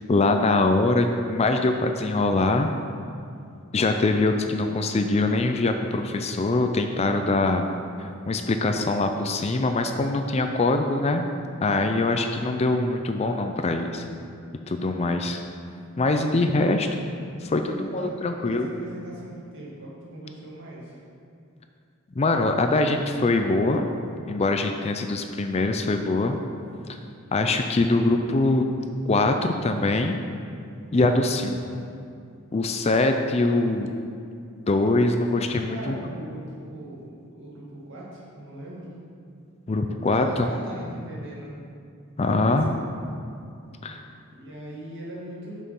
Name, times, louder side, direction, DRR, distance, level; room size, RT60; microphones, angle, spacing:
voice 1, 0.1-2.7 3.7-7.7 8.0-11.2 11.6-14.0 14.7-15.4 16.0-16.9 17.4-18.7 22.2-23.9 24.3-26.4 26.9-27.0 27.3-28.7 29.1-30.2 30.9-31.6 32.5-33.9 34.7-36.0 39.7-40.5 42.2-42.7 43.8-44.0, left 2 dB, 30° left, 6 dB, 0.4 m, -23 dB
voice 2, 17.6-21.0 35.7-38.9 40.1-41.5 42.2-43.2 44.3-45.6, right 1 dB, 60° right, -5 dB, 2.2 m, -40 dB
7.1 x 6.5 x 5.4 m, 2.4 s
head